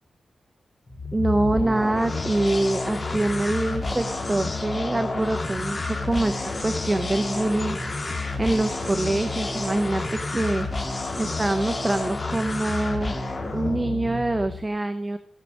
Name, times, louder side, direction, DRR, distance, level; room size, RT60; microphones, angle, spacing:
sound 1, 0.9-14.6, left 2 dB, 30° left, 2.7 m, -30 dB
voice 1, 1.1-7.8 8.4-10.7 11.2-13.1 13.5-15.2, right 2 dB, 20° right, 9 dB, 0.8 m, -25 dB
17.5 x 6.7 x 6.5 m, 0.62 s
wide cardioid pair, 95°, 0 cm